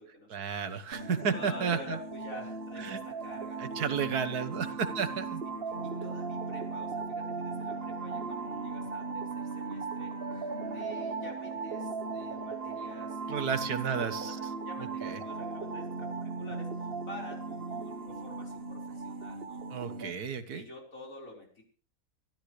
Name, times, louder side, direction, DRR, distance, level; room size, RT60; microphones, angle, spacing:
voice 1, 0.3-2.0 2.8-3.0 3.6-5.4 13.3-14.4 15.0-15.2 19.7-20.7, right 6 dB, 80° right, 10 dB, 1.8 m, -32 dB
sound 1, 0.9-20.1, right 4 dB, 40° right, 1.3 m, -37 dB
voice 2, 1.2-5.2 5.7-19.6 20.5-21.6, left 1 dB, 60° left, -1 dB, 5.2 m, -49 dB
25.0 x 12.5 x 3.3 m, 0.40 s
omnidirectional pair, 1.6 m